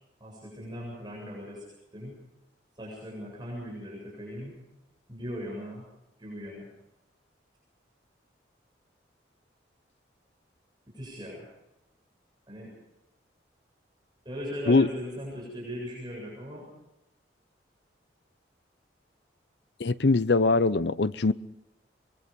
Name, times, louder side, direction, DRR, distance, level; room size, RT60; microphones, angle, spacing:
voice 1, 0.2-1.6 1.9-2.2 2.7-4.6 5.1-5.9 6.2-6.7 10.9-11.5 12.5-12.7 14.2-16.7, equal, 25° right, 7.8 m, -39 dB
voice 2, 19.8-21.3, left 3 dB, 65° left, 0.7 m, -22 dB
24.0 x 22.5 x 5.4 m
head